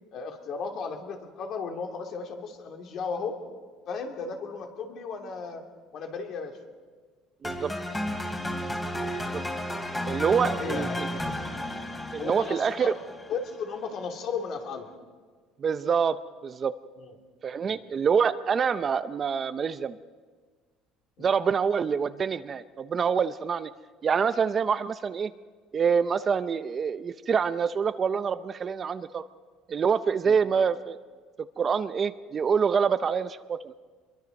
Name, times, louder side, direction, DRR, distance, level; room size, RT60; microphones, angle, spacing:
voice 1, 0.1-3.4 3.9-5.6 5.9-6.6 8.6-8.8 10.5-11.0 11.5-11.6 12.2-12.9 13.3-14.9 17.0-17.1 17.6-17.8 21.2-21.3 30.2-30.4, left 5 dB, 45° left, 3 dB, 2.9 m, -35 dB
sound 1, 7.4-13.6, left 1 dB, 10° left, 2.8 m, -33 dB
voice 2, 7.4-7.7 9.3-9.4 10.1-10.9 12.1-12.9 15.6-16.2 16.4-16.7 17.4-20.0 21.2-23.7 24.0-25.3 25.7-29.2 29.7-31.0 31.6-33.8, right 6 dB, 25° right, 12 dB, 0.5 m, -26 dB
26.5 x 22.5 x 5.3 m, 1.5 s
cardioid pair, 155°, 0 cm